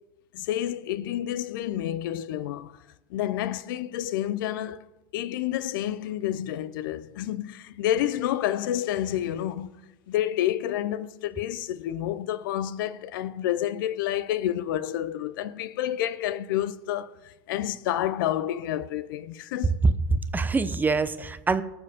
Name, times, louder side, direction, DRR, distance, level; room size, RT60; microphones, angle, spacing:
voice 1, 0.3-2.8 3.1-4.9 5.1-9.7 10.1-19.8, left 12 dB, 75° left, 0.6 m, -29 dB
voice 2, 19.8-21.6, right 3 dB, 15° right, 0.8 m, -24 dB
18.5 x 7.0 x 3.6 m
hypercardioid pair, 100°, 11 cm